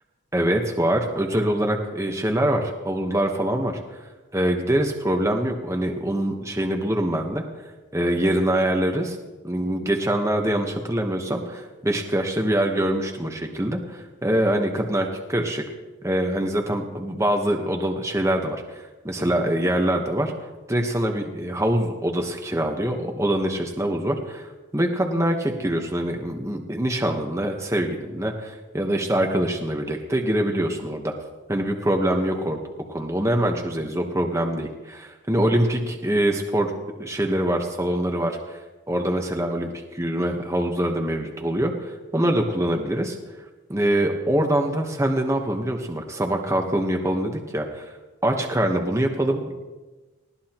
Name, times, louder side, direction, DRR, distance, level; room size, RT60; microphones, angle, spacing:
voice 1, 0.3-3.8 4.3-7.4 7.9-9.2 9.4-15.6 16.0-18.8 19.0-20.3 20.7-24.5 24.7-31.1 31.5-32.6 32.9-36.7 37.0-38.6 38.9-43.2 43.7-47.9 48.2-49.5, right 1 dB, 15° right, 2 dB, 1.1 m, -24 dB
19.5 x 15.5 x 3.0 m, 1.2 s
head